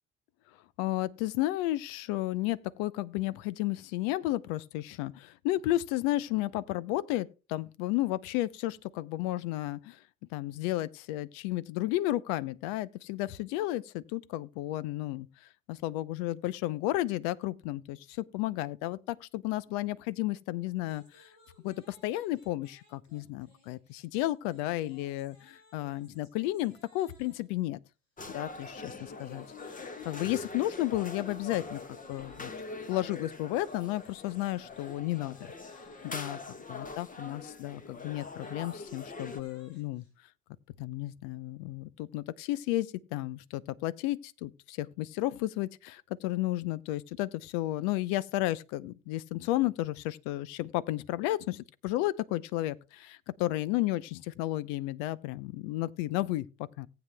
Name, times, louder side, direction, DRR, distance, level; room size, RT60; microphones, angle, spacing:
voice 1, 0.8-10.0 10.3-15.3 15.7-21.3 21.6-27.8 28.3-31.8 32.1-32.5 32.9-35.5 36.0-36.4 36.7-40.0 40.8-56.9, left 16 dB, 70° left, 0.7 m, -33 dB
sound 1, 20.8-27.6 28.6-36.6 37.9-40.1, left 2 dB, 85° left, 4.2 m, -62 dB
sound 2, 28.2-39.4, left 3 dB, 20° left, 1.4 m, -43 dB
18.0 x 8.1 x 2.2 m
hypercardioid pair, 85°, 38 cm